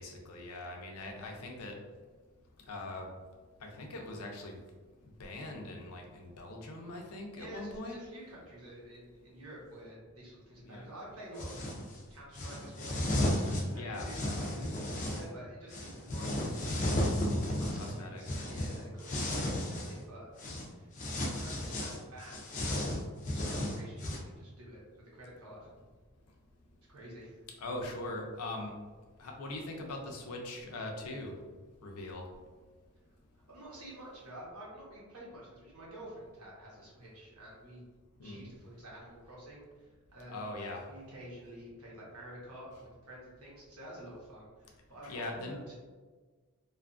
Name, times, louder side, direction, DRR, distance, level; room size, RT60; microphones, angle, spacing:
voice 1, 0.0-1.8 2.7-3.1 3.6-4.6 5.2-8.0 10.6-10.9 13.7-14.1 17.7-18.2 19.4-19.6 27.6-28.7 29.2-31.3 31.8-32.2 38.2-38.4 40.3-40.8 45.0-45.6, left 2 dB, 90° left, 1 dB, 0.5 m, -41 dB
voice 2, 7.1-13.0 13.7-17.0 17.5-20.4 20.7-23.0 23.3-25.9 26.9-27.4 33.3-37.8 38.2-45.7, right 1 dB, 80° right, -5 dB, 1.0 m, -49 dB
sound 1, 11.4-11.9 12.3-15.3 15.7-20.0 20.4-20.7 21.0-24.2, left 1 dB, 35° left, 0.4 m, -34 dB
2.5 x 2.4 x 2.4 m, 1.4 s
head